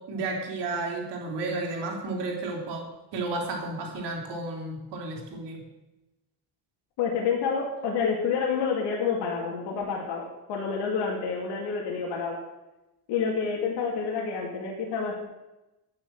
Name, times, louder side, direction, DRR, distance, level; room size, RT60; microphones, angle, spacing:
voice 1, 0.1-2.9 3.1-5.6, right 2 dB, 80° right, 0 dB, 3.8 m, -32 dB
voice 2, 7.0-12.4 13.1-15.2, left 5 dB, 80° left, -1 dB, 2.6 m, -28 dB
9.7 x 9.3 x 7.8 m, 0.99 s
cardioid pair, 160°, 41 cm